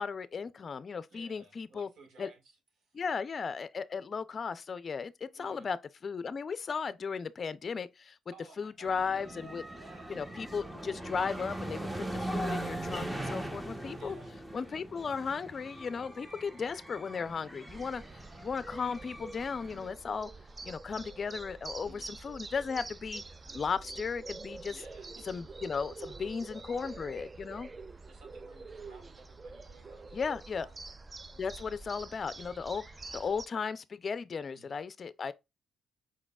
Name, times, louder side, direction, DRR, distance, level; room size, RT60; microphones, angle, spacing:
voice 1, 0.0-1.9 2.2-2.3 2.9-5.8 6.0-8.2 8.6-9.6 10.1-14.2 14.5-18.0 18.4-20.3 20.6-23.2 23.5-24.8 25.3-27.7 30.1-30.7 31.4-32.8 33.1-35.3, left 5 dB, 40° left, 0.4 m, -36 dB
voice 2, 1.1-3.0 5.3-5.7 8.3-10.1 13.9-14.4 21.9-22.2 24.7-25.2 26.0-27.3 28.1-30.8 34.5-34.7, right 3 dB, 75° right, 1.8 m, -57 dB
sound 1, 8.8-19.9, right 1 dB, 10° right, 0.9 m, -40 dB
sound 2, 17.7-33.5, right 3 dB, 25° right, 0.4 m, -46 dB
5.0 x 4.1 x 2.3 m
cardioid pair, 90°, 0 cm